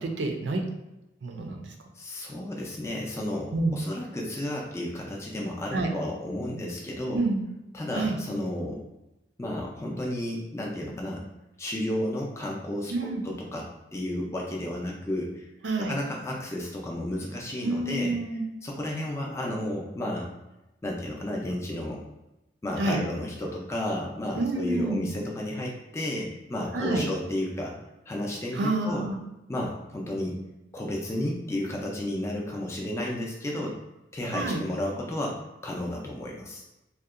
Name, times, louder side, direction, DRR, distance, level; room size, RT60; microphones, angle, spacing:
voice 1, 0.0-0.6 1.2-1.6 3.5-3.8 5.7-5.9 7.1-7.4 8.0-8.2 12.9-13.2 15.6-16.0 17.6-18.4 22.8-23.0 24.3-25.1 26.7-27.0 28.5-29.2 34.3-34.6, right 2 dB, 85° right, 3 dB, 0.4 m, -28 dB
voice 2, 2.0-7.2 7.7-8.8 9.4-11.2 11.6-15.5 15.8-20.3 20.8-22.1 22.6-27.8 28.1-29.1 29.5-30.4 30.7-33.8 34.1-36.6, left 1 dB, 15° left, -2 dB, 0.4 m, -32 dB
2.7 x 2.1 x 2.4 m, 0.97 s
head